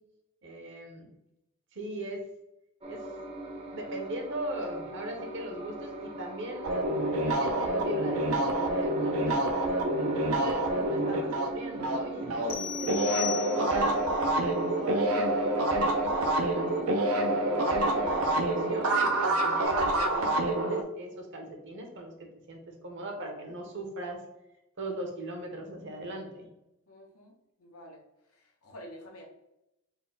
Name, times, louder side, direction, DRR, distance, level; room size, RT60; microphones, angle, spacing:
voice 1, 0.4-1.1 1.7-2.2 2.9-3.0 3.7-6.7 7.2-9.5 10.0-14.0 14.4-24.2 24.8-26.5, right 1 dB, 60° right, 3 dB, 0.9 m, -39 dB
sound 1, 2.8-19.7, right 2 dB, 30° right, 0.6 m, -39 dB
sound 2, 6.6-12.5 12.8-20.8, right 1 dB, 75° right, 0.5 m, -27 dB
sound 3, 12.5-14.0, left 11 dB, 45° left, 0.4 m, -36 dB
voice 2, 26.9-27.3 27.6-28.0 28.4-29.3, equal, 80° left, 1 dB, 0.9 m, -48 dB
4.4 x 2.1 x 3.8 m, 0.89 s
head